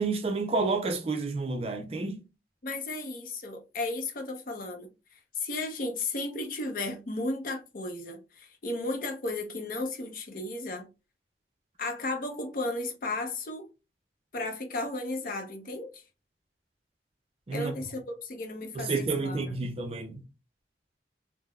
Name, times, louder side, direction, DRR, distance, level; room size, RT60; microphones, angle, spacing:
voice 1, 0.0-2.2 17.5-17.7 18.8-20.2, right 3 dB, 35° right, 0.4 m, -30 dB
voice 2, 2.6-4.9 5.3-10.9 11.8-13.7 14.3-16.0 17.5-19.4, left 2 dB, 50° left, 0.5 m, -34 dB
3.4 x 2.0 x 2.2 m
head